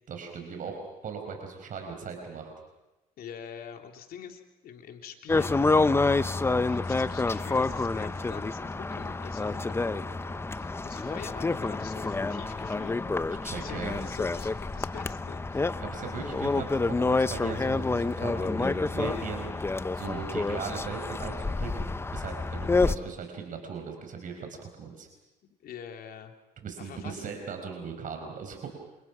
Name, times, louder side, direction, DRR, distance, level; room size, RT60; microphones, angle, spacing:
voice 1, 0.1-2.5 13.4-14.0 15.8-25.1 26.6-28.7, right 5 dB, 50° right, 4 dB, 4.8 m, -38 dB
voice 2, 3.2-5.5 6.7-13.0 13.6-15.5 25.6-26.3 26.8-27.3, left 8 dB, 65° left, 4 dB, 3.3 m, -45 dB
sound 1, 5.3-23.0, left 3 dB, 15° left, 0.8 m, -28 dB
29.0 x 27.5 x 6.1 m, 1.0 s
cardioid pair, 110°, 17 cm